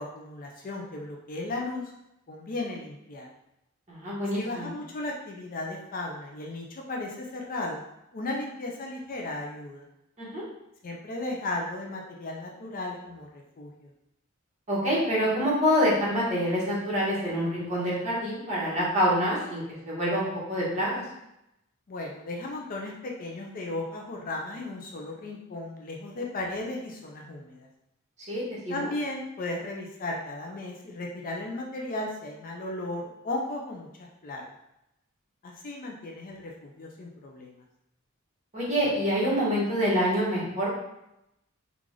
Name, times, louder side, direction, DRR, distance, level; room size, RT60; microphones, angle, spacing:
voice 1, 0.0-1.9 2.3-3.3 4.3-7.8 8.1-9.8 10.8-13.9 21.9-27.7 28.7-34.4 35.4-37.6, left 2 dB, 40° left, 0 dB, 0.5 m, -35 dB
voice 2, 3.9-4.7 10.2-10.4 14.7-21.0 28.3-28.8 38.5-40.7, equal, 35° right, -7 dB, 1.4 m, -26 dB
3.8 x 2.4 x 3.1 m, 0.84 s
head